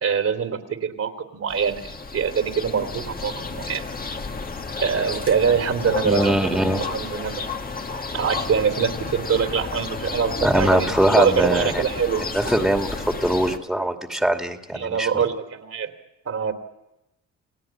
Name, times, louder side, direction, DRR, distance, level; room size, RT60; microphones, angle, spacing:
voice 1, 0.0-3.8 4.8-6.3 6.8-7.4 8.1-12.2 14.7-15.9 16.2-16.5, right 6 dB, 55° right, 6 dB, 3.0 m, -24 dB
sound 1, 1.5-13.6, left 4 dB, 30° left, 1.9 m, -32 dB
voice 2, 6.0-6.9 10.4-11.8 12.3-15.2, right 1 dB, ahead, 4 dB, 2.5 m, -22 dB
29.5 x 17.5 x 8.8 m, 0.94 s
cardioid pair, 90°, 30 cm